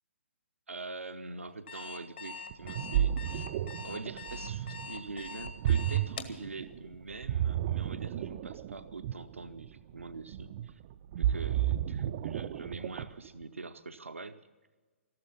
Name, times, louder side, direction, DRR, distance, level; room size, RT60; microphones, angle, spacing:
voice 1, 0.7-3.5 3.8-10.8 11.2-14.4, right 3 dB, 75° right, 9 dB, 0.7 m, -44 dB
Alarm, 1.5-6.4, left 5 dB, 50° left, 1.5 m, -43 dB
Ocean, 2.5-13.3, right 11 dB, 35° right, 0.4 m, -32 dB
14.0 x 12.5 x 7.1 m, 1.3 s
figure-of-eight pair, 125°, 7 cm